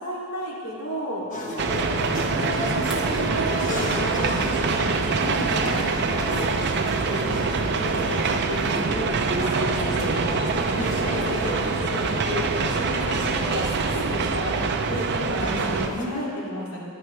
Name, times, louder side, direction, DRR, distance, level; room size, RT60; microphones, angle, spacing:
voice 1, 0.0-1.2 2.3-6.5 6.8-7.2 7.8-10.4 11.0-11.6 11.8-14.6 14.8-16.8, equal, 75° left, -5 dB, 2.8 m, -33 dB
sound 1, 1.3-16.1, left 1 dB, 35° left, 1.2 m, -34 dB
sound 2, 1.6-15.9, right 4 dB, 50° right, 0.6 m, -25 dB
sound 3, 2.0-8.4, equal, 5° right, 1.4 m, -43 dB
15.0 x 11.0 x 3.3 m, 2.5 s
head